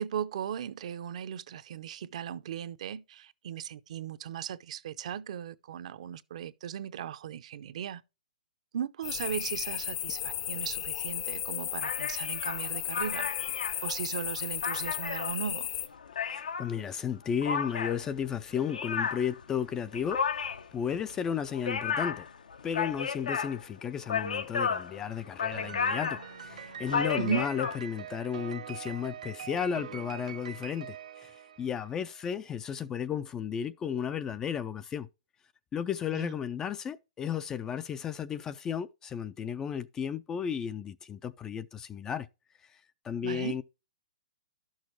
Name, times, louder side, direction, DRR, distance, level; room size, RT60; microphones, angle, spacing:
voice 1, 0.0-8.0 8.7-13.3 13.8-15.7 27.2-27.4 36.1-36.4 43.2-43.6, right 8 dB, 55° right, 0.7 m, -37 dB
sound 1, 9.0-15.9, left 12 dB, 45° left, 0.7 m, -35 dB
sound 2, 11.8-16.7 17.4-27.8, left 6 dB, 85° left, 0.9 m, -33 dB
voice 2, 16.3-20.2 20.7-22.3 22.6-31.3 31.6-35.1 35.7-42.3 43.0-43.6, left 8 dB, 15° left, 0.3 m, -34 dB
Piano, 25.5-32.0, right 8 dB, 70° right, 1.1 m, -43 dB
11.5 x 6.3 x 3.1 m
hypercardioid pair, 150°, 4 cm